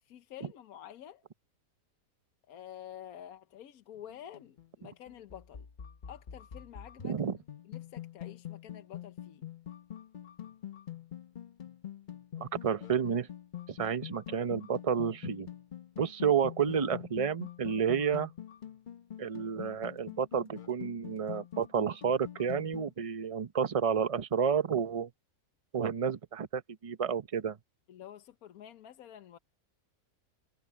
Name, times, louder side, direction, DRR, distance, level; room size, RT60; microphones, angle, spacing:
voice 1, 0.0-1.2 2.5-5.7 6.1-7.2 7.6-9.4 27.9-29.4, left 10 dB, 70° left, 1.2 m, -49 dB
sound 1, 4.0-22.9, left 11 dB, 40° left, 0.8 m, -45 dB
voice 2, 7.0-7.4 12.3-13.3 13.7-15.5 16.0-18.3 19.2-25.1 25.7-27.6, right 7 dB, 35° right, 0.6 m, -30 dB
omnidirectional pair, 1.6 m